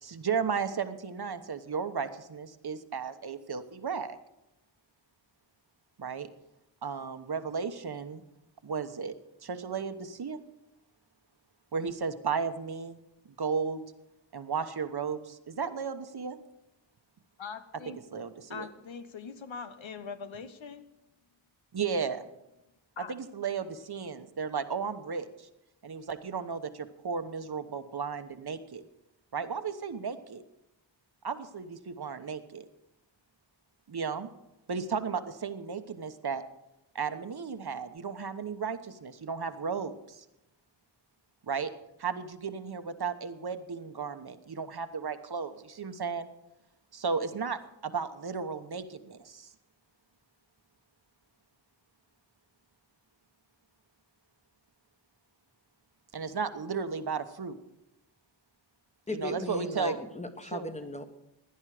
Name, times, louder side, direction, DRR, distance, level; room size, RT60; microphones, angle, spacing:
voice 1, 0.0-4.2 6.0-6.3 6.8-8.2 8.6-9.1 9.4-10.4 11.7-13.0 13.4-13.8 14.3-16.4 18.1-18.7 21.7-22.2 23.0-25.5 25.8-28.8 29.3-30.4 31.2-32.6 33.9-34.3 34.7-36.4 36.9-40.2 41.5-41.7 42.0-46.3 46.9-49.5 56.1-57.6 59.1-60.0 60.5-60.7, right 5 dB, 55° right, 9 dB, 1.1 m, -34 dB
voice 2, 17.4-18.0 18.5-20.9 23.0-23.1, left 5 dB, 90° left, 10 dB, 1.2 m, -42 dB
voice 3, 59.1-61.0, left 2 dB, 15° left, 7 dB, 1.3 m, -37 dB
17.0 x 10.5 x 5.0 m, 0.87 s
wide cardioid pair, 105°, 46 cm